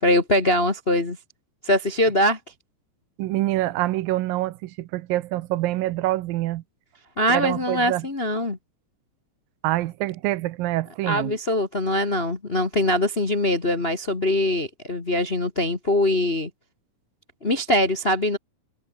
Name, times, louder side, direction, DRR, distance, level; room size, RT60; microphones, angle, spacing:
voice 1, 0.0-1.2 1.6-2.4 7.2-8.6 11.0-16.5 17.4-18.4, left 1 dB, 30° left, 1.1 m, -22 dB
voice 2, 3.2-6.6 7.3-8.1 9.6-11.4, right 16 dB, 80° right, 2.6 m, -26 dB
omnidirectional pair, 4.1 m